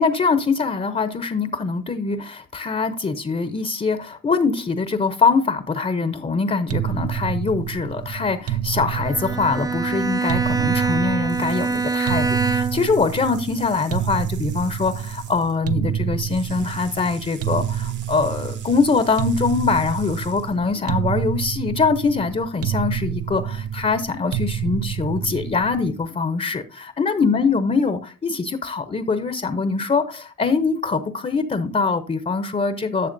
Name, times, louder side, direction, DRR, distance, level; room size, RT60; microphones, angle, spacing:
voice 1, 0.0-33.1, left 4 dB, 25° left, 11 dB, 0.7 m, -23 dB
sound 1, 6.7-26.0, right 10 dB, 50° right, 0.8 m, -28 dB
Bowed string instrument, 8.9-13.0, right 4 dB, 10° right, 0.4 m, -24 dB
sound 2, 11.3-15.6 16.3-20.6, right 8 dB, 75° right, 2.1 m, -44 dB
12.0 x 7.0 x 2.6 m, 0.39 s
cardioid pair, 90°, 30 cm